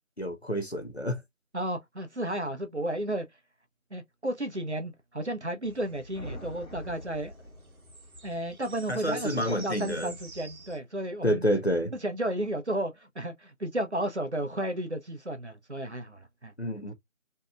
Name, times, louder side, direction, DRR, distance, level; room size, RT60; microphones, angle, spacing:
voice 1, 0.2-1.2 8.9-10.1 11.2-11.9 16.6-16.9, equal, 50° left, 0.6 m, -28 dB
voice 2, 1.5-3.3 3.9-7.3 8.2-11.4 12.0-16.5, right 1 dB, 55° right, 0.5 m, -33 dB
sound 1, 5.6-10.8, right 2 dB, 90° right, 0.9 m, -49 dB
sound 2, 6.1-8.3, left 1 dB, 65° left, 1.0 m, -44 dB
2.6 x 2.2 x 2.3 m
figure-of-eight pair, 175°, 42 cm